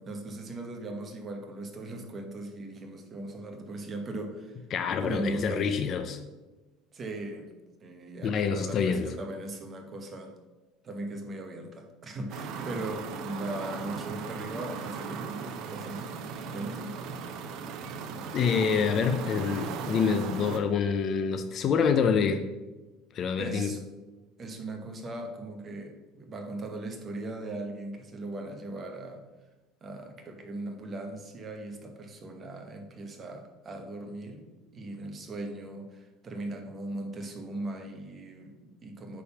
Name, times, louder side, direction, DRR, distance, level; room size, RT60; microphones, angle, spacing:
voice 1, 0.0-4.6 5.0-5.8 6.9-7.5 7.8-10.3 10.8-16.0 16.4-16.9 23.4-23.8 24.4-29.2 29.8-39.2, right 2 dB, 20° right, 4 dB, 0.9 m, -39 dB
voice 2, 4.7-6.2 8.2-9.1 18.3-22.5 23.1-23.7, left 6 dB, 35° left, 8 dB, 0.4 m, -26 dB
sound 1, 12.3-20.6, right 5 dB, 50° right, 0.6 m, -37 dB
8.6 x 3.6 x 5.7 m, 1.1 s
cardioid pair, 170°, 0 cm